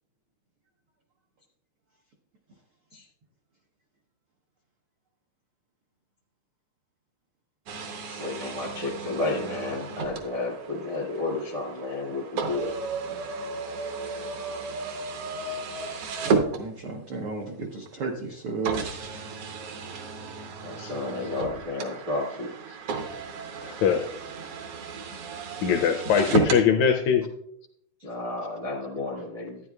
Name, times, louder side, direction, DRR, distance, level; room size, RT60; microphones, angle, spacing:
sound 1, 7.7-17.1 17.9-18.0 18.6-26.7, right 4 dB, 70° right, 1.4 m, -33 dB
voice 1, 8.1-12.7 13.1-13.2 20.6-22.5 28.0-29.6, left 2 dB, 55° right, -4 dB, 0.7 m, -32 dB
voice 2, 16.6-18.8 25.1-25.2, right 4 dB, 85° right, 1 dB, 1.1 m, -33 dB
voice 3, 23.6-24.1 25.6-27.3, left 7 dB, 80° left, 5 dB, 1.7 m, -22 dB
12.5 x 9.6 x 2.3 m, 0.71 s
omnidirectional pair, 3.7 m